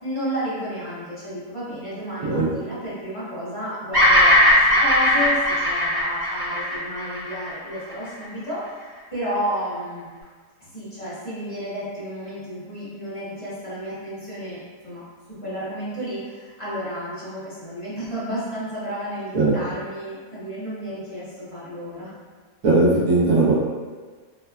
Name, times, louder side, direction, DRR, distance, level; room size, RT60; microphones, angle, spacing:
voice 1, 0.0-8.7 9.1-10.1 10.7-15.0 15.3-22.1, equal, 30° left, -12 dB, 0.6 m, -31 dB
Bird vocalization bird call bird song, 3.9-8.2, left 1 dB, 25° right, 0.5 m, -18 dB
voice 2, 22.6-23.5, right 3 dB, 65° right, -8 dB, 1.1 m, -18 dB
3.2 x 2.2 x 2.3 m, 1.5 s
omnidirectional pair, 1.6 m